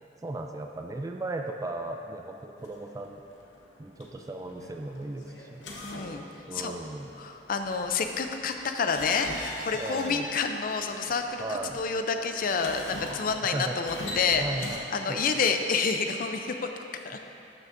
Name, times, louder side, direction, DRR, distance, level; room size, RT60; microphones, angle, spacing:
voice 1, 0.2-3.2 3.8-5.7 6.5-7.1 9.8-10.3 11.4-11.8 13.5-13.8 14.3-15.2, right 2 dB, 20° right, 3 dB, 0.3 m, -36 dB
sound 1, 2.6-14.8, left 1 dB, 90° left, 0.8 m, -44 dB
voice 2, 5.8-6.2 6.5-6.7 7.2-17.2, left 5 dB, 50° left, 6 dB, 0.5 m, -29 dB
12.0 x 6.1 x 2.6 m, 2.9 s
head